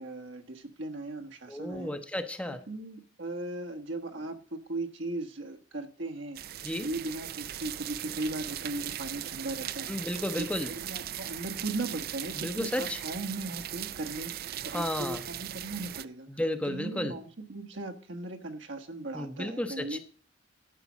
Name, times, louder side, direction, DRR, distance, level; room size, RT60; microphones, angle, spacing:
voice 1, 0.0-2.0 2.5-6.4 6.8-10.0 10.4-16.3 16.6-20.0, right 2 dB, 70° right, 4 dB, 1.3 m, -38 dB
voice 2, 1.5-2.6 6.6-6.9 9.9-10.7 12.3-13.0 14.7-15.2 16.3-17.2 19.1-20.0, left 1 dB, 5° left, 8 dB, 0.7 m, -33 dB
sound 1, 6.3-16.0, right 12 dB, 55° right, 0.4 m, -39 dB
11.0 x 5.2 x 7.2 m, 0.41 s
head